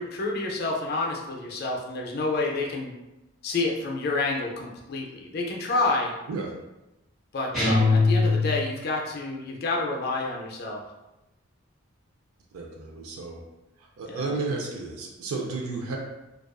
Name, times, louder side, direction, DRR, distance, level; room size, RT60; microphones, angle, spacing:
voice 1, 0.0-2.9 3.4-6.1 7.3-10.8 14.1-14.3, left 2 dB, 45° left, 0 dB, 0.4 m, -29 dB
sound 1, 7.5-8.9, left 3 dB, ahead, 0.8 m, -22 dB
voice 2, 12.5-13.4 14.0-16.0, right 3 dB, 80° right, 0 dB, 0.4 m, -32 dB
2.4 x 2.3 x 2.2 m, 0.99 s
head